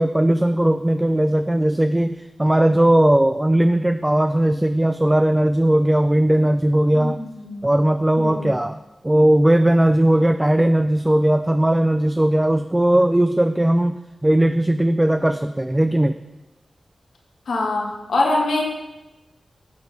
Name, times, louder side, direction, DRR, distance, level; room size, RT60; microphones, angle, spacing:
voice 1, 0.0-7.2 7.6-8.8 9.0-16.2, right 1 dB, 15° right, 9 dB, 0.3 m, -18 dB
voice 2, 6.9-7.6 8.2-8.5 17.5-18.6, left 2 dB, 85° left, -1 dB, 1.4 m, -23 dB
13.5 x 4.5 x 3.3 m, 1.0 s
cardioid pair, 50°, 0 cm